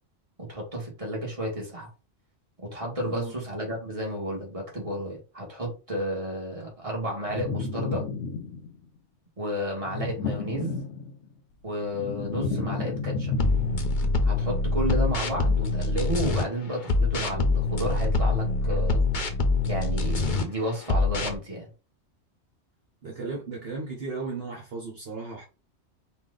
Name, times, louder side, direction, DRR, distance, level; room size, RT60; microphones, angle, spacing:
voice 1, 0.4-1.9 2.6-8.0 9.4-10.8 11.6-13.3 14.3-19.0 19.6-21.7, equal, 30° right, 1.8 m, -32 dB
voice 2, 3.0-3.3 23.0-25.4, right 4 dB, 60° right, 1.4 m, -35 dB
sound 1, 7.3-8.9 9.8-11.3 11.7-14.1, left 4 dB, 85° left, 1.0 m, -32 dB
sound 2, 13.4-16.4 16.8-20.4 20.8-21.4, left 3 dB, 45° left, 0.8 m, -24 dB
4.6 x 2.5 x 3.9 m
omnidirectional pair, 1.2 m